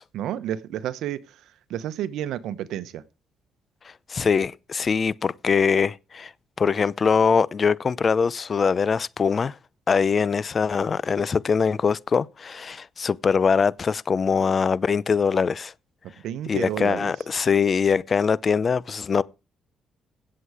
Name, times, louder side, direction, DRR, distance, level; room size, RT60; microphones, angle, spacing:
voice 1, 0.1-1.4 1.7-3.0 16.2-17.1, right 11 dB, 85° right, 0.9 m, -31 dB
voice 2, 4.1-6.3 6.6-9.6 9.9-15.7 16.5-19.2, left 5 dB, 40° left, 0.6 m, -22 dB
16.5 x 7.8 x 4.8 m
cardioid pair, 90°, 0 cm